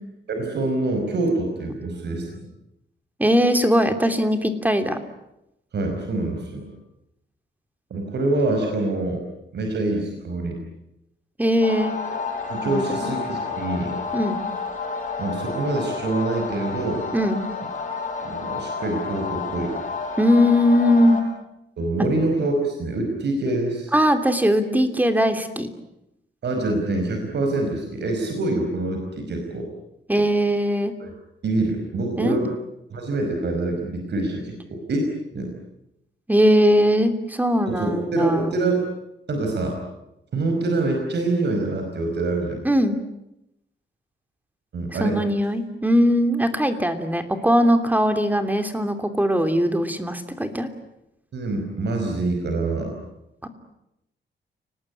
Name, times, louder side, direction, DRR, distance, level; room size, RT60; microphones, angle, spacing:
voice 1, 0.3-2.3 5.7-6.7 7.9-9.3 9.5-10.6 12.5-14.0 15.2-17.0 18.2-19.8 21.8-23.9 26.4-29.7 31.0-31.1 31.4-32.5 32.9-35.5 37.7-38.8 39.3-39.8 40.3-42.6 44.7-45.2 51.3-53.0, right 2 dB, 65° right, 3 dB, 5.3 m, -25 dB
voice 2, 3.2-5.0 11.4-11.9 12.6-13.1 14.1-14.4 17.1-17.4 20.2-21.2 23.9-25.7 30.1-30.9 32.2-32.5 36.3-38.6 42.6-43.0 45.0-50.7 53.4-53.5, equal, 10° right, 7 dB, 3.0 m, -20 dB
sound 1, 11.6-21.2, left 4 dB, 40° left, 6.6 m, -30 dB
30.0 x 19.5 x 10.0 m, 0.86 s
wide cardioid pair, 130°, 19 cm